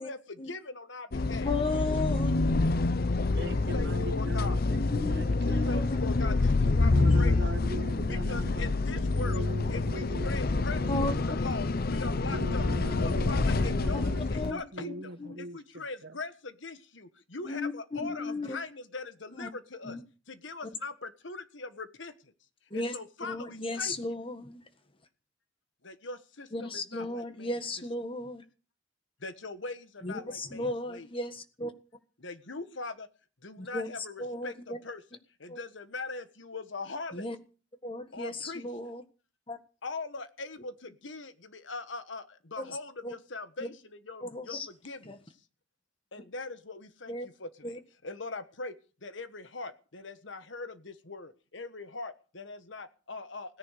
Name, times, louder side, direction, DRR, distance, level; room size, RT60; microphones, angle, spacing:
voice 1, 0.0-1.5 3.5-4.6 5.4-7.3 8.1-9.4 9.7-12.7 13.0-15.1 15.4-20.0 20.3-22.3 22.7-24.0 25.8-27.6 29.2-31.1 32.2-33.1 33.4-35.0 35.4-37.3 38.1-38.7 39.8-45.2 46.1-48.7 49.0-53.6, left 3 dB, 70° left, 11 dB, 1.4 m, -41 dB
sound 1, 1.1-14.5, left 3 dB, 50° left, 0.6 m, -27 dB
voice 2, 1.4-2.6 4.9-6.1 7.1-7.3 10.9-11.1 14.3-14.6 17.4-18.5 19.3-19.5 19.8-20.0 22.7-22.9 23.3-24.6 26.5-28.4 30.0-31.7 33.6-33.9 34.2-34.8 35.5-35.6 37.1-37.4 37.8-39.0 39.5-39.6 43.0-43.1 44.2-44.7 45.1-45.2 47.1-47.3 47.6-47.8, left 2 dB, 30° left, 9 dB, 1.5 m, -35 dB
voice 3, 3.4-5.9 6.6-11.1 12.1-16.2, right 1 dB, 60° right, 11 dB, 1.2 m, -40 dB
17.0 x 10.5 x 6.5 m, 0.38 s
head